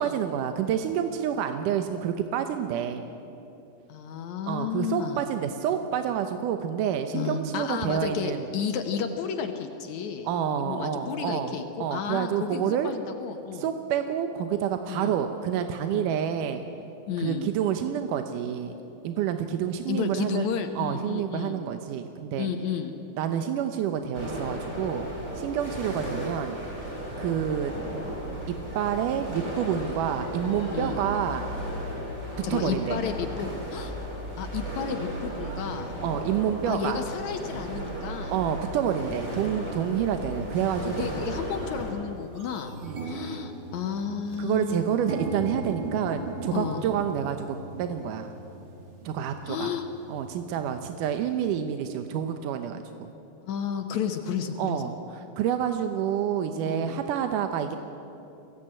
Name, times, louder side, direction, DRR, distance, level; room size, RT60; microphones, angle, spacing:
voice 1, 0.0-3.0 4.5-8.5 10.2-11.5 11.8-12.9 13.5-16.6 17.2-18.7 19.0-20.5 20.8-22.5 23.2-25.1 25.4-26.6 27.2-27.7 28.5-31.4 32.5-33.0 36.0-37.0 38.3-40.9 42.8-43.4 44.4-48.3 49.1-49.7 50.1-53.1 54.6-55.0 55.4-57.8, right 9 dB, 75° right, 7 dB, 2.0 m, -28 dB
voice 2, 3.9-5.2 7.1-10.3 10.6-13.7 14.9-15.1 15.9-16.1 17.1-17.5 19.9-21.6 22.4-22.9 30.7-31.0 32.4-33.9 34.4-35.9 36.7-38.4 40.8-42.7 43.0-44.8 46.5-46.8 49.4-49.8 53.5-54.8 56.6-57.0, left 7 dB, 70° left, 5 dB, 1.8 m, -32 dB
sound 1, 24.1-41.9, equal, 20° right, 6.8 m, -35 dB
sound 2, 40.0-40.1 40.9-41.1 41.5-41.6 41.9-51.6, right 3 dB, 50° right, 1.4 m, -39 dB
22.5 x 17.0 x 8.9 m, 2.9 s
omnidirectional pair, 4.6 m